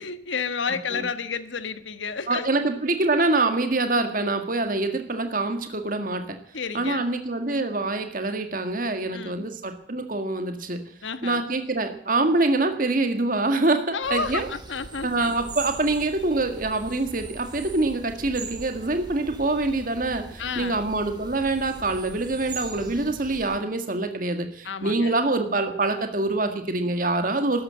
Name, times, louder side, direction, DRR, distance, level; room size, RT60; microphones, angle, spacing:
voice 1, 0.0-2.5 6.5-7.1 9.1-9.5 11.0-11.5 13.9-15.3 20.4-20.8 22.9-23.2 24.6-25.1, left 5 dB, 85° left, 12 dB, 1.3 m, -31 dB
voice 2, 2.3-6.4 6.7-10.8 11.2-14.5 15.0-27.6, right 2 dB, 45° right, 6 dB, 1.8 m, -25 dB
sound 1, 14.0-23.6, right 3 dB, 25° right, 2.3 m, -41 dB
13.5 x 11.5 x 8.7 m, 0.67 s
head